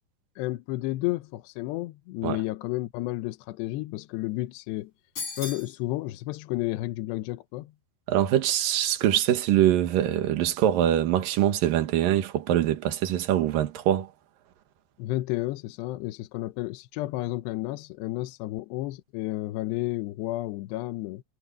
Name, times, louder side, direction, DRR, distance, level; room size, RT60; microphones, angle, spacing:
voice 1, 0.4-4.9 5.4-7.7 15.0-21.2, left 18 dB, 80° left, 2.9 m, -31 dB
sound 1, 5.2-5.8, left 4 dB, 30° left, 4.4 m, -35 dB
voice 2, 8.1-14.1, right 11 dB, 60° right, 2.8 m, -23 dB
omnidirectional pair, 5.1 m